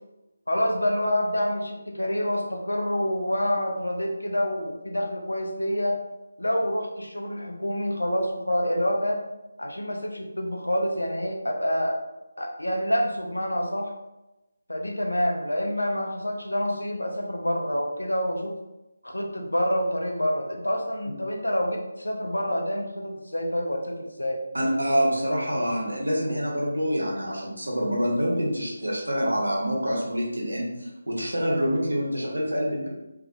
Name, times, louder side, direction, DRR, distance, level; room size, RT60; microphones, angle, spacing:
voice 1, 0.5-6.0 6.4-9.2 9.6-12.0 12.4-13.9 14.7-18.6 19.0-24.4, equal, 85° left, 1 dB, 0.5 m, -27 dB
voice 2, 24.5-32.9, equal, 85° right, -2 dB, 0.9 m, -26 dB
2.7 x 2.4 x 2.5 m, 0.97 s
figure-of-eight pair, 155°, 0 cm